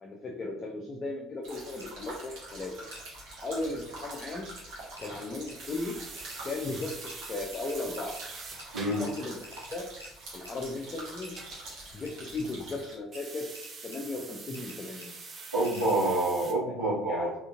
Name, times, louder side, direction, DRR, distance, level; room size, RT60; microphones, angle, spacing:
voice 1, 0.0-2.9 3.4-4.5 5.0-6.0 6.4-7.0 7.3-8.2 9.0-9.9 10.3-11.4 11.9-13.5 13.8-15.1 16.7-16.8 17.0-17.4, left 2 dB, 35° left, 0 dB, 0.5 m, -36 dB
sound 1, 1.4-12.9, right 2 dB, 55° right, 1.2 m, -45 dB
sound 2, 1.8-1.9 2.9-3.0 4.4-4.5 5.0-5.1 5.5-5.6 6.2-6.4 6.8-8.2 8.6-8.7 8.9-10.1 10.5-10.6 11.2-11.4 12.1-12.4 13.2-13.3 13.5-14.0 14.5-14.8 15.0-15.1 15.6-15.9, left 1 dB, 90° left, 0.5 m, -49 dB
sound 3, 5.6-12.7 13.1-16.5, right 4 dB, 35° right, 0.5 m, -46 dB
voice 2, 15.5-17.3, right 1 dB, 85° right, -13 dB, 1.0 m, -27 dB
3.7 x 2.5 x 2.4 m, 0.81 s
figure-of-eight pair, 55°, 0 cm